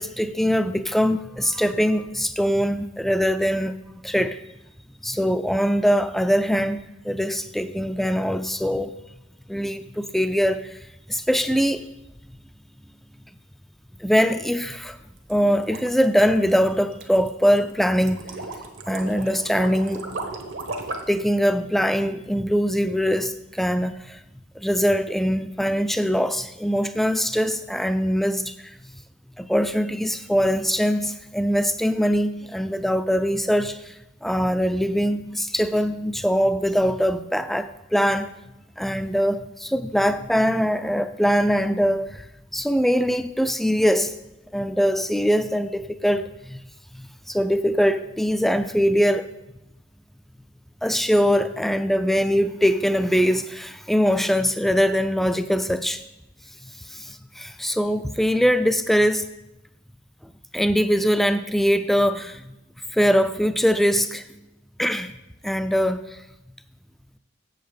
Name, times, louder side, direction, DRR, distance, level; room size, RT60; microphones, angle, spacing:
voice 1, 0.0-3.8 4.0-4.4 5.0-6.8 7.0-8.9 9.5-10.8 11.1-11.9 14.0-15.0 15.3-18.2 18.9-20.0 21.1-24.2 24.6-28.8 29.4-38.3 38.8-42.3 42.5-44.1 44.5-46.6 46.9-49.3 50.8-56.0 56.6-59.3 60.2-62.5 62.9-64.3 64.8-65.1 65.4-66.2, equal, ahead, 11 dB, 0.3 m, -22 dB
sound 1, 15.2-21.2, right 2 dB, 70° right, 1.2 m, -35 dB
7.9 x 7.1 x 4.9 m, 0.92 s
head